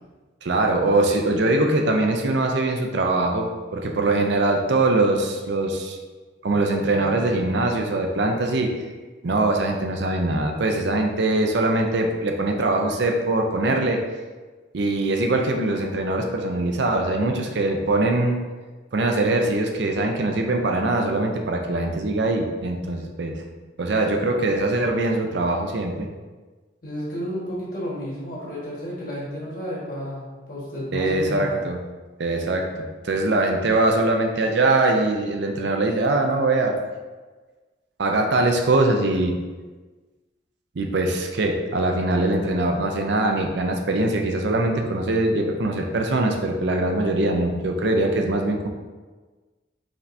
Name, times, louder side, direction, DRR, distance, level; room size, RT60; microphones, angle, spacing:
voice 1, 0.4-6.0 6.4-8.9 9.2-14.0 14.7-18.4 18.9-23.3 23.8-26.1 30.9-31.8 32.2-36.8 38.0-39.4 40.8-48.7, right 2 dB, 65° right, 3 dB, 0.5 m, -22 dB
voice 2, 26.8-31.6, equal, 45° left, -6 dB, 1.5 m, -32 dB
5.0 x 3.3 x 2.6 m, 1.3 s
head